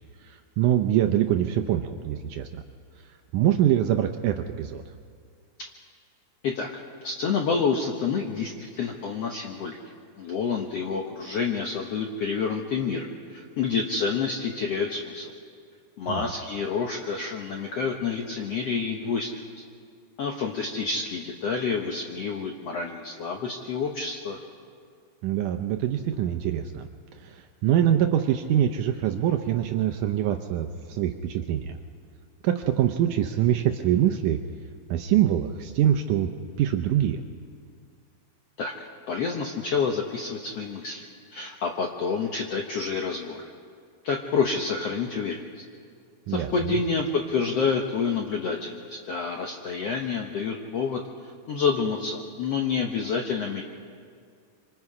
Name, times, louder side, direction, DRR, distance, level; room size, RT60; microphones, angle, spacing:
voice 1, 0.2-2.5 3.3-4.8 16.1-16.3 25.2-26.9 27.2-31.8 32.4-34.4 34.9-36.3 36.6-37.2 46.3-46.8, right 11 dB, 75° right, 6 dB, 1.9 m, -24 dB
voice 2, 7.0-9.8 10.2-15.3 16.0-19.4 20.2-24.4 38.6-43.4 44.0-45.4 46.3-51.0 51.5-53.6, left 5 dB, 75° left, 2 dB, 1.4 m, -28 dB
26.0 x 26.0 x 4.9 m, 2.2 s
omnidirectional pair, 4.3 m